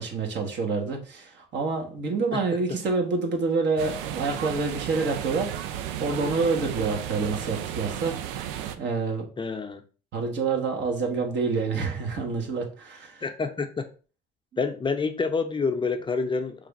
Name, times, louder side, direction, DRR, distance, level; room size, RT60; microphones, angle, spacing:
voice 1, 0.0-5.5 6.0-8.1 8.8-9.3 10.1-13.2, right 4 dB, 60° right, 3 dB, 1.1 m, -27 dB
sound 1, 3.8-8.8, right 10 dB, 80° right, 0.4 m, -33 dB
voice 2, 9.4-9.8 13.2-13.9 14.6-16.7, left 4 dB, 25° left, 7 dB, 0.5 m, -28 dB
3.2 x 2.4 x 4.0 m, 0.37 s
hypercardioid pair, 65°, 20 cm